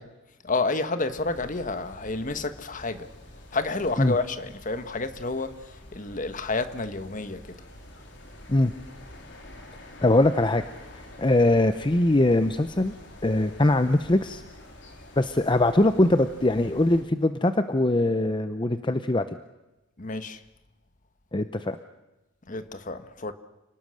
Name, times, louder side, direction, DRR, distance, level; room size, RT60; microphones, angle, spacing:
voice 1, 0.4-3.1 3.5-5.5 5.9-7.4 20.0-20.4 22.5-23.3, left 3 dB, 45° left, 1.4 m, -29 dB
sound 1, 1.1-17.0, left 1 dB, 65° left, 3.9 m, -47 dB
voice 2, 10.0-10.6 11.2-12.9 13.2-14.4 15.2-19.2 21.3-21.8, left 2 dB, 25° left, 0.8 m, -22 dB
29.0 x 19.5 x 6.5 m
head